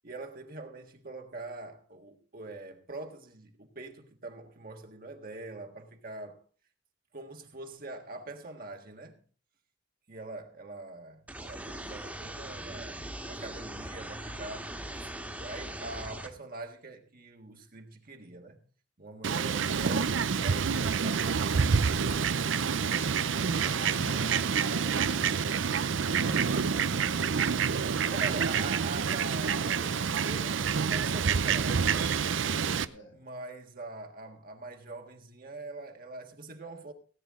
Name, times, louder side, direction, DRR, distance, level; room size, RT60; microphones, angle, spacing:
voice 1, 0.0-6.4 7.1-9.2 10.1-18.6 19.0-21.8 28.0-32.1 33.1-36.9, right 2 dB, 50° right, 1.6 m, -43 dB
sound 1, 11.3-16.3, right 1 dB, 10° right, 1.7 m, -40 dB
Fowl, 19.2-32.8, right 6 dB, 80° right, 0.6 m, -28 dB
voice 2, 22.8-27.5 32.8-33.2, left 1 dB, 90° left, 5.8 m, -48 dB
18.0 x 9.2 x 3.7 m
head